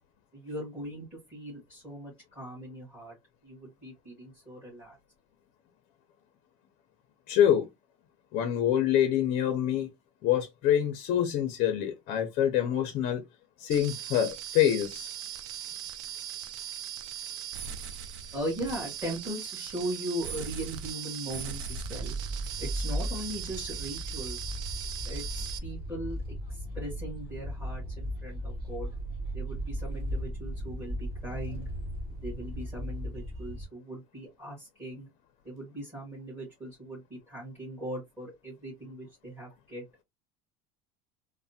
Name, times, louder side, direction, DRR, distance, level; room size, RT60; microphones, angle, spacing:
voice 1, 0.3-3.1 3.4-5.0 18.3-22.1 22.6-24.5 25.0-26.2 26.5-28.9 29.3-31.7 32.2-35.1 35.4-39.8, right 1 dB, 10° right, 1.6 m, -39 dB
voice 2, 7.3-7.7 8.3-9.9 10.2-13.2 13.6-15.1, left 10 dB, 40° left, 0.5 m, -26 dB
sound 1, 13.7-25.6, right 9 dB, 75° right, 0.5 m, -39 dB
sound 2, 21.6-33.6, equal, 35° right, 1.6 m, -36 dB
3.2 x 2.1 x 2.6 m
cardioid pair, 180°, 16 cm